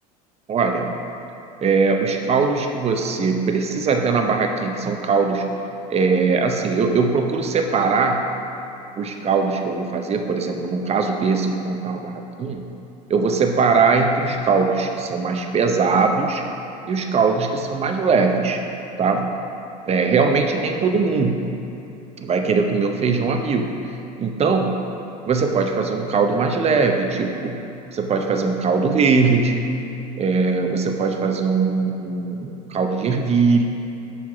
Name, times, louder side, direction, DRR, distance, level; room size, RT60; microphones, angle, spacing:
voice 1, 0.5-0.9 1.6-5.5 5.9-8.3 9.0-12.6 13.1-16.4 16.9-18.6 19.0-19.3 19.9-21.4 22.2-23.8 24.2-24.7 25.3-27.6 27.9-29.8 30.2-33.6, right 4 dB, 30° right, 4 dB, 0.7 m, -20 dB
5.7 x 4.7 x 5.6 m, 2.8 s
hypercardioid pair, 80°, 21 cm